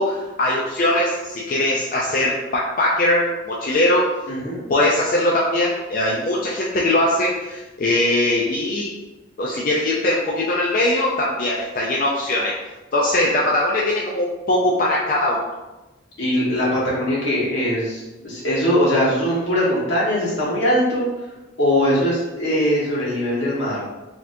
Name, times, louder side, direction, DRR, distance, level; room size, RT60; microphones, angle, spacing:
voice 1, 0.0-4.1 4.7-8.9 9.4-12.5 12.9-15.4, left 1 dB, 45° left, -3 dB, 0.4 m, -21 dB
voice 2, 4.3-4.7 16.2-21.1 21.6-23.8, equal, 75° left, -7 dB, 1.4 m, -21 dB
4.1 x 2.9 x 2.6 m, 1.1 s
head